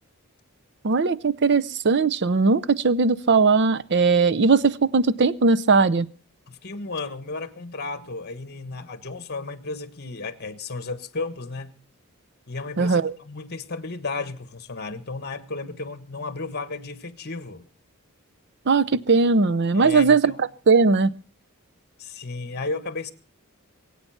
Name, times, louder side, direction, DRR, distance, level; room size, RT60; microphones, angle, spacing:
voice 1, 0.8-6.1 12.8-13.1 18.7-21.1, right 4 dB, 50° right, 0.6 m, -19 dB
voice 2, 6.5-11.7 12.5-17.6 19.7-20.4 22.0-23.1, left 3 dB, 45° left, 1.4 m, -33 dB
22.5 x 8.6 x 5.8 m
head